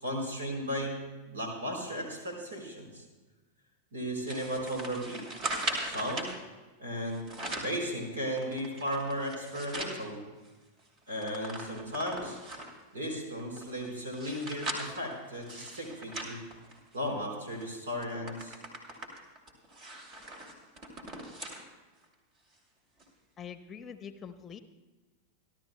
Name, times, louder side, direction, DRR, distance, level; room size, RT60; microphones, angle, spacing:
voice 1, 0.0-3.0 3.9-5.3 5.8-6.4 6.8-7.2 7.6-10.2 11.1-12.4 12.9-16.4 16.9-18.6, equal, 70° right, 1 dB, 4.5 m, -35 dB
sound 1, 4.3-6.3 7.1-7.8 8.3-10.0 10.4-10.5 10.8-12.8 13.4-17.1 17.5-17.7 18.0-21.6 22.0-22.1 23.0-23.1, right 2 dB, 35° right, 2.6 m, -39 dB
voice 2, 23.4-24.6, left 7 dB, 25° left, 9 dB, 1.0 m, -44 dB
28.5 x 12.5 x 2.2 m, 1.2 s
figure-of-eight pair, 90°, 0 cm